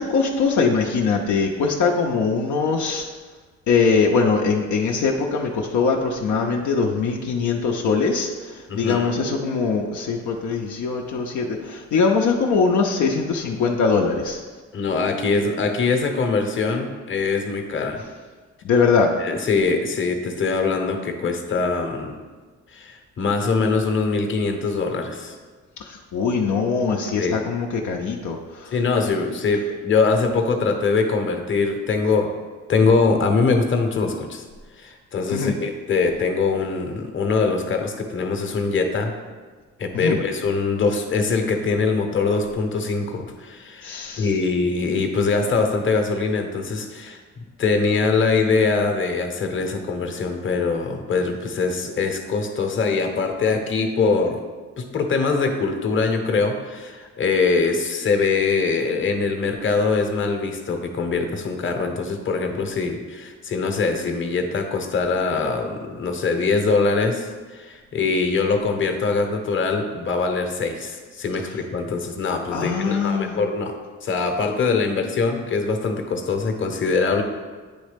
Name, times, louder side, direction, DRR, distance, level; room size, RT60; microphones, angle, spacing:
voice 1, 0.0-3.1 3.7-14.4 18.6-19.1 25.9-28.7 35.3-35.5 39.9-40.2 43.8-44.3 72.5-73.4, left 5 dB, 70° left, 0 dB, 0.7 m, -22 dB
voice 2, 8.7-9.1 14.7-18.0 19.2-22.1 22.7-25.3 27.2-27.4 28.7-32.3 32.7-34.4 34.8-39.1 39.8-47.2 47.6-54.4 54.8-73.8 74.0-77.2, left 4 dB, 40° left, 4 dB, 0.9 m, -23 dB
8.7 x 3.1 x 5.1 m, 1.4 s
cardioid pair, 90°, 30 cm